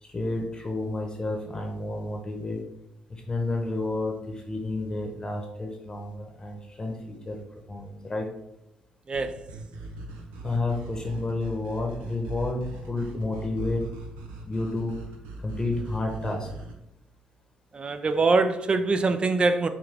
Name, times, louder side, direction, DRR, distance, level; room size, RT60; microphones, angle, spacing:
voice 1, 0.0-2.6 3.1-7.4 7.7-8.3 10.4-13.9 14.5-15.1 15.4-16.5, left 2 dB, 30° left, 1 dB, 0.9 m, -30 dB
voice 2, 9.1-9.4 17.7-19.7, right 3 dB, 35° right, 9 dB, 0.5 m, -23 dB
sound 1, 9.1-16.8, right 2 dB, 85° right, 0.7 m, -40 dB
5.8 x 2.3 x 3.4 m, 0.83 s
supercardioid pair, 55°, 3 cm